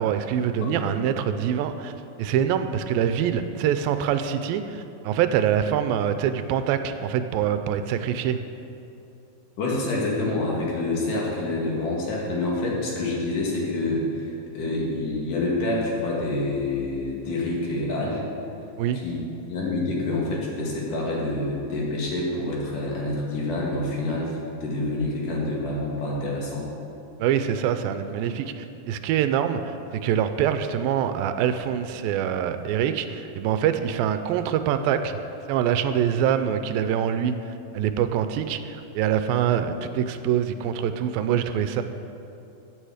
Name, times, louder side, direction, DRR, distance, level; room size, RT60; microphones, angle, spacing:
voice 1, 0.0-8.4 18.8-19.0 27.2-35.2 35.5-41.8, right 9 dB, 90° right, 9 dB, 2.4 m, -25 dB
voice 2, 9.6-18.3 19.0-19.2 19.5-24.3 24.6-26.7, left 2 dB, 65° left, -3 dB, 3.4 m, -27 dB
14.5 x 8.5 x 5.0 m, 2.8 s
omnidirectional pair, 4.1 m